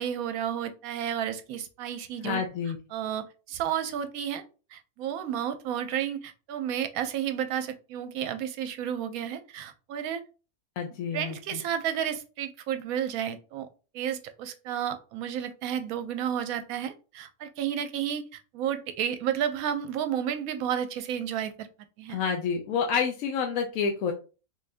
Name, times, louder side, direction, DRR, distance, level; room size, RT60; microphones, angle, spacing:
voice 1, 0.0-2.4 2.9-4.4 4.7-10.2 11.1-13.7 13.9-21.7 22.0-22.2, right 9 dB, 80° right, 9 dB, 1.0 m, -32 dB
voice 2, 2.2-2.8 10.8-11.6 22.1-24.1, left 6 dB, 75° left, 2 dB, 0.9 m, -29 dB
3.7 x 2.6 x 3.3 m, 0.34 s
omnidirectional pair, 1.5 m